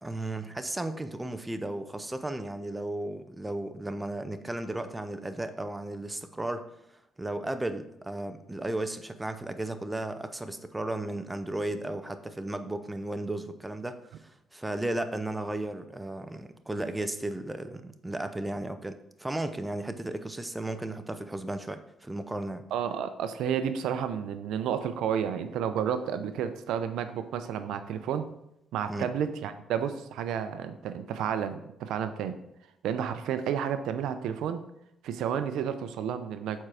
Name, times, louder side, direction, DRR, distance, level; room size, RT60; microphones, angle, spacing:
voice 1, 0.0-6.7 7.2-22.6 28.9-29.1, right 1 dB, 15° right, 10 dB, 0.6 m, -34 dB
voice 2, 22.7-28.3 28.7-32.4 32.8-34.6 35.0-36.7, right 8 dB, 85° right, 10 dB, 0.5 m, -31 dB
7.4 x 4.5 x 4.8 m, 0.80 s
cardioid pair, 90°, 0 cm